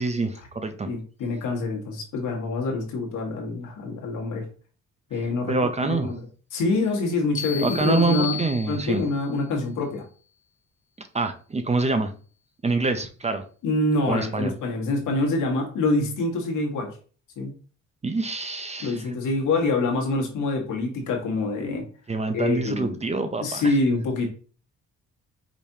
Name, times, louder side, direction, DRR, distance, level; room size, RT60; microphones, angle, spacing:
voice 1, 0.0-0.9 5.5-6.1 7.6-9.0 11.0-12.1 12.6-13.4 14.1-14.5 18.0-19.0 22.1-23.7, right 3 dB, 20° right, 0.5 m, -26 dB
voice 2, 0.9-4.4 5.1-5.5 5.8-6.2 6.5-8.4 8.7-10.0 13.6-17.0 17.4-17.5 18.8-21.9 22.3-23.0 23.4-24.3, left 2 dB, 80° left, 1.4 m, -26 dB
sound 1, 7.3-9.3, left 8 dB, 25° left, 1.0 m, -34 dB
5.0 x 3.2 x 2.8 m
cardioid pair, 90°, 30 cm